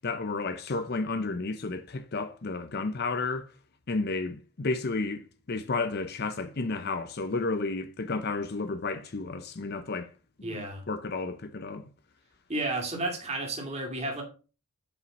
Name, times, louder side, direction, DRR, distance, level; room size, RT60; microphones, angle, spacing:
voice 1, 0.0-3.5 3.9-10.1 10.4-11.9, left 3 dB, 45° left, 0.6 m, -32 dB
voice 2, 10.4-10.8 12.5-14.2, right 2 dB, 30° right, 2.3 m, -32 dB
8.1 x 5.6 x 5.3 m
head